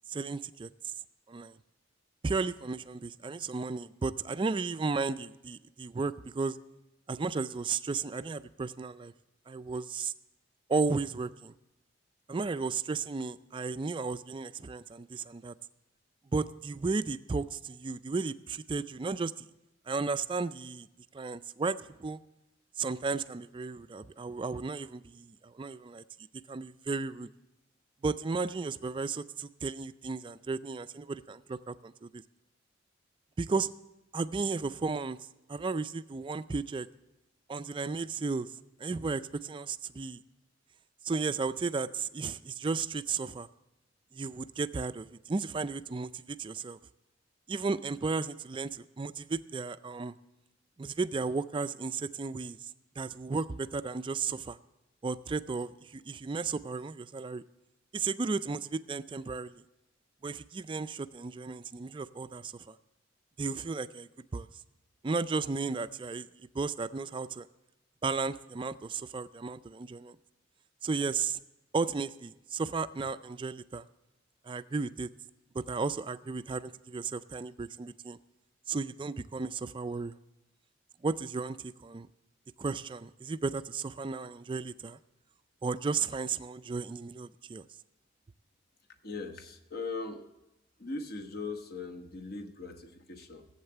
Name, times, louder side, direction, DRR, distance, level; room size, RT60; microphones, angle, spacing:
voice 1, 0.1-0.7 1.3-1.6 2.2-6.6 7.1-9.1 9.5-10.1 10.7-11.5 12.3-15.5 16.3-19.5 19.9-20.9 21.1-22.2 22.8-26.0 26.5-27.3 28.0-32.2 33.4-33.7 34.1-35.2 35.5-36.9 37.5-38.5 38.8-40.2 41.0-43.5 44.1-46.8 47.5-50.1 50.8-52.7 53.0-54.6 55.0-57.4 57.9-59.5 60.2-62.8 63.4-64.5 65.0-66.3 66.5-67.5 68.0-70.2 70.8-71.4 71.7-73.8 74.4-75.1 75.5-78.2 78.7-80.2 81.0-82.1 82.6-85.0 85.6-87.7, right 4 dB, 25° right, 13 dB, 0.3 m, -34 dB
voice 2, 89.0-90.3 90.8-93.5, left 3 dB, 50° left, 7 dB, 1.0 m, -40 dB
14.5 x 8.0 x 6.7 m, 0.95 s
head